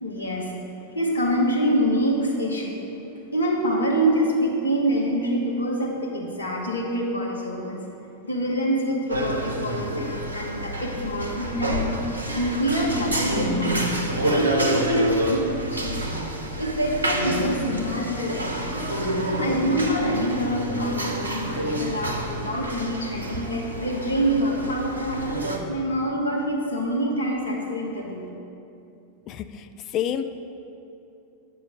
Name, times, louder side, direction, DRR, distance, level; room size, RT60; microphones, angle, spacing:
voice 1, 0.0-0.5 0.9-2.9 3.3-7.8 8.2-12.0 12.3-16.1 16.6-18.8 19.4-25.2 25.7-28.2, equal, 75° left, -2 dB, 1.3 m, -26 dB
sound 1, 9.1-25.6, right 1 dB, 75° right, 0.7 m, -28 dB
voice 2, 29.3-30.2, left 10 dB, 35° left, 9 dB, 0.4 m, -29 dB
8.7 x 5.4 x 5.1 m, 2.7 s
figure-of-eight pair, 90°, 0 cm